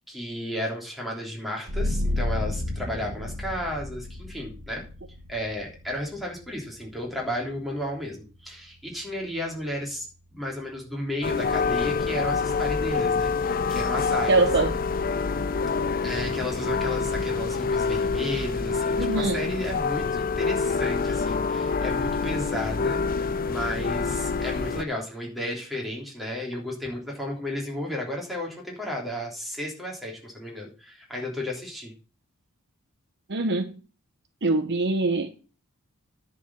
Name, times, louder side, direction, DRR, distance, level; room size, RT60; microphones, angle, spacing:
voice 1, 0.1-4.8 5.3-10.1 10.3-14.4 16.0-31.9, left 1 dB, ahead, 3.3 m, -33 dB
sound 1, 1.7-12.9, left 1 dB, 90° right, 1.7 m, -35 dB
sound 2, 11.2-24.8, left 4 dB, 40° left, 0.5 m, -26 dB
voice 2, 14.3-14.8 19.0-19.4 33.3-33.8 34.4-35.3, right 3 dB, 55° right, 0.9 m, -23 dB
10.0 x 4.9 x 7.5 m
head